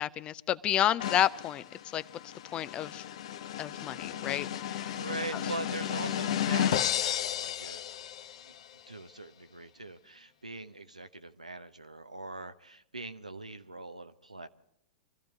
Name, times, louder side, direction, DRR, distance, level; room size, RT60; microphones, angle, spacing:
voice 1, 0.0-1.6 1.9-3.0 3.6-5.0, left 11 dB, 25° left, 0.5 m, -31 dB
sound 1, 1.0-8.6, left 10 dB, 55° left, 0.9 m, -33 dB
voice 2, 5.0-7.8 8.4-8.6 8.9-14.5, right 2 dB, 85° right, 0.8 m, -42 dB
24.0 x 14.5 x 3.5 m
figure-of-eight pair, 100°, 4 cm